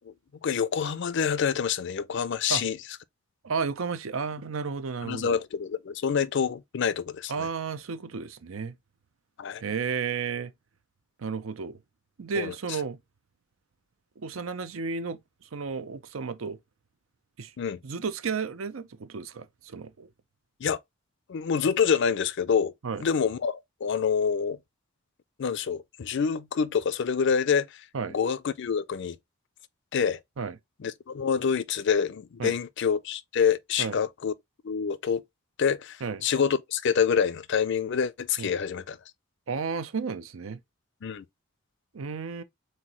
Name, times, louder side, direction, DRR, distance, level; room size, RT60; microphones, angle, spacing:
voice 1, 0.4-2.8 5.0-7.5 9.4-9.6 12.3-12.5 17.6-17.8 20.6-20.8 21.3-22.7 23.0-24.6 25.4-29.2 29.9-30.2 30.8-34.3 34.6-35.2 35.6-39.0 41.0-41.2, left 6 dB, 60° left, 0.4 m, -27 dB
voice 2, 3.4-5.4 7.3-8.7 9.6-10.5 11.2-11.8 12.2-13.0 14.2-15.2 15.5-16.6 17.4-17.5 17.8-20.1 22.8-23.0 27.9-28.1 30.4-30.6 32.4-32.6 33.8-34.0 36.0-36.2 38.4-38.5 39.5-40.6 41.9-42.4, right 5 dB, 85° right, 0.6 m, -32 dB
4.3 x 3.9 x 2.9 m
head